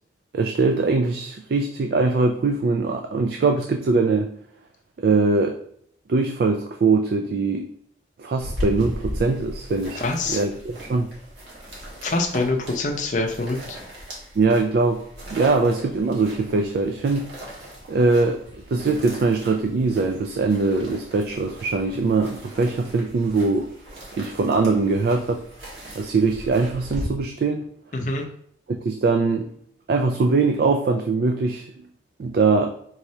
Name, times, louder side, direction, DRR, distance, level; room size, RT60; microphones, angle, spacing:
voice 1, 0.3-4.3 5.0-5.6 6.1-7.7 8.2-11.1 14.4-15.0 15.3-17.3 17.9-23.7 24.2-25.4 26.0-27.7 28.7-29.5 29.9-31.7 32.2-32.7, right 3 dB, 50° right, 4 dB, 0.3 m, -22 dB
sound 1, 8.4-27.1, equal, 70° right, 1.5 m, -38 dB
voice 2, 10.0-10.4 12.0-13.8 27.9-28.2, left 2 dB, 40° left, 3 dB, 0.5 m, -25 dB
4.6 x 3.1 x 2.8 m, 0.66 s
head